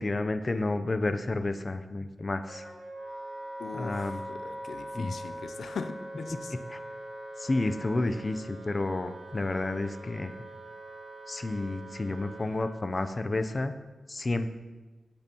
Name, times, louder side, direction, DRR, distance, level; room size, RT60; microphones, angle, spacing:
voice 1, 0.0-2.6 3.7-4.2 4.9-5.1 6.5-6.8 7.4-10.3 11.3-13.7 14.1-14.5, left 2 dB, 35° left, 9 dB, 0.5 m, -30 dB
Wind instrument woodwind instrument, 2.5-12.8, right 1 dB, 40° right, 2.0 m, -42 dB
voice 2, 3.6-6.6, left 5 dB, 80° left, 9 dB, 0.5 m, -40 dB
14.5 x 8.8 x 2.9 m, 1.2 s
wide cardioid pair, 85°, 0 cm